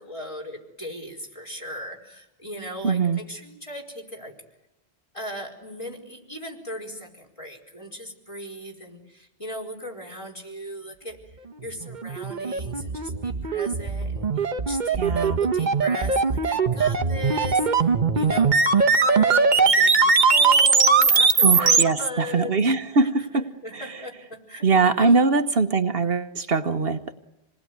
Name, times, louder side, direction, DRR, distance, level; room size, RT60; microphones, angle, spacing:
voice 1, 0.0-4.3 5.1-11.2 11.6-22.5 22.9-25.3, left 1 dB, 30° left, 0 dB, 4.9 m, -38 dB
voice 2, 2.8-3.2 15.0-15.4 21.4-23.4 23.7-23.9 24.6-27.1, right 4 dB, 65° right, 7 dB, 1.3 m, -22 dB
sound 1, 11.8-21.8, right 4 dB, 45° right, 1.2 m, -20 dB
27.5 x 19.5 x 9.5 m, 0.97 s
omnidirectional pair, 1.1 m